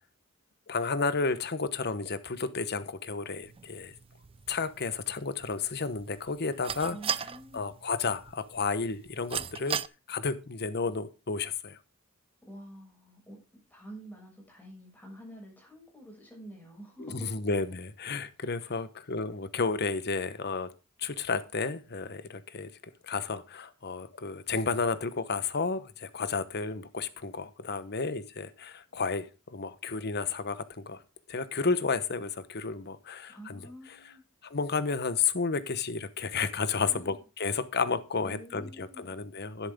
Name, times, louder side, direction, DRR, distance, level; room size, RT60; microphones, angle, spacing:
voice 1, 0.7-3.9 4.5-7.0 7.5-9.8 10.1-11.8 17.0-20.7 21.0-22.7 23.0-31.0 31.3-34.1 34.4-39.7, left 4 dB, 50° left, 1.1 m, -32 dB
sound 1, 3.4-9.9, right 8 dB, 25° right, 0.4 m, -39 dB
voice 2, 6.9-7.7 12.4-17.3 18.6-18.8 33.3-34.2 36.8-37.2 38.2-39.1, right 1 dB, 10° left, 6.8 m, -48 dB
11.5 x 10.5 x 3.7 m
head